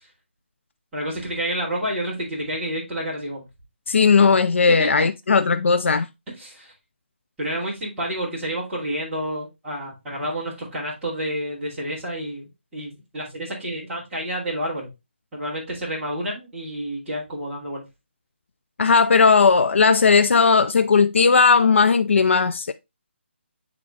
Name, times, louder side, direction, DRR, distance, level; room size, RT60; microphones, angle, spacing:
voice 1, 0.9-3.4 4.8-5.1 6.4-6.7 7.4-14.9 15.3-17.8, equal, 5° right, 2.6 m, -29 dB
voice 2, 3.9-6.1 18.8-22.7, left 5 dB, 80° left, 0.4 m, -17 dB
8.5 x 3.6 x 3.2 m
hypercardioid pair, 175°, 7 cm